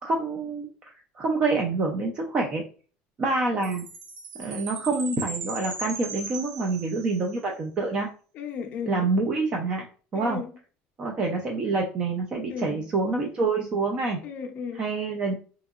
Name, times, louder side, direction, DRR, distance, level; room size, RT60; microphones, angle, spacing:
voice 1, 0.0-0.7 1.2-2.6 3.2-3.8 4.4-8.1 8.8-9.9 10.1-10.4 11.0-14.2 14.7-15.3, right 3 dB, 25° right, 0.4 m, -27 dB
Chime, 3.6-7.3, right 4 dB, 65° right, 0.9 m, -37 dB
voice 2, 8.3-9.1 10.1-10.5 12.5-12.9 14.2-14.9, left 6 dB, 40° left, 0.5 m, -35 dB
3.6 x 2.8 x 2.3 m
cardioid pair, 175°, 4 cm